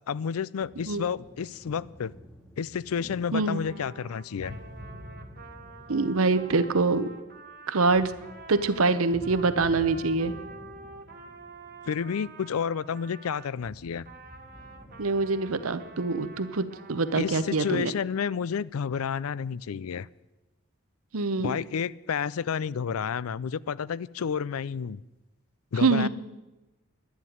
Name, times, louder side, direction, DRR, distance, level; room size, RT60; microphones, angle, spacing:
voice 1, 0.1-2.1 2.6-4.6 11.9-14.0 17.1-20.1 21.4-25.0 25.7-26.1, left 7 dB, 90° left, 21 dB, 0.4 m, -30 dB
sound 1, 0.6-7.5 7.9-12.7 13.6-17.4, equal, 5° left, 1.3 m, -49 dB
Trumpet, 3.3-13.5 14.0-17.8, right 3 dB, 45° right, 1.4 m, -48 dB
voice 2, 3.3-3.6 5.9-7.1 7.7-8.1 8.5-10.3 15.0-17.9 21.1-21.6 25.8-26.1, right 3 dB, 85° right, 12 dB, 0.8 m, -25 dB
11.0 x 10.5 x 9.4 m, 1.1 s
head